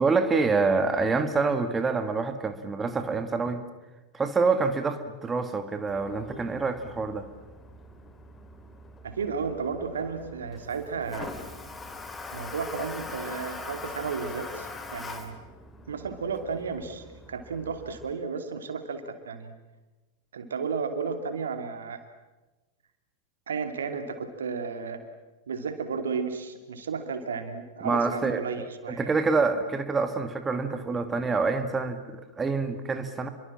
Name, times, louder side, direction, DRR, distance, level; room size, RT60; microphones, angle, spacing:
voice 1, 0.0-3.6 4.1-7.2 27.8-28.4 28.9-33.3, right 4 dB, 15° right, 8 dB, 1.9 m, -26 dB
Toilet flush, 5.9-18.1, left 3 dB, 15° left, 3.0 m, -42 dB
voice 2, 9.0-11.3 12.3-15.3 15.9-19.5 20.3-22.0 23.5-25.0 25.5-29.1, right 5 dB, 65° right, 8 dB, 2.7 m, -33 dB
30.0 x 23.5 x 7.5 m, 1.1 s
figure-of-eight pair, 90°, 0 cm